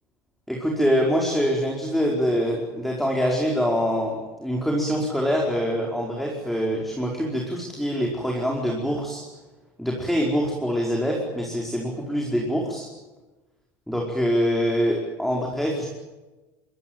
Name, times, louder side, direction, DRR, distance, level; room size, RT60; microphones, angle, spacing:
voice 1, 0.5-9.2 9.8-12.9 13.9-15.9, equal, ahead, -1 dB, 5.1 m, -24 dB
24.0 x 20.5 x 9.2 m, 1.2 s
supercardioid pair, 115°, 9 cm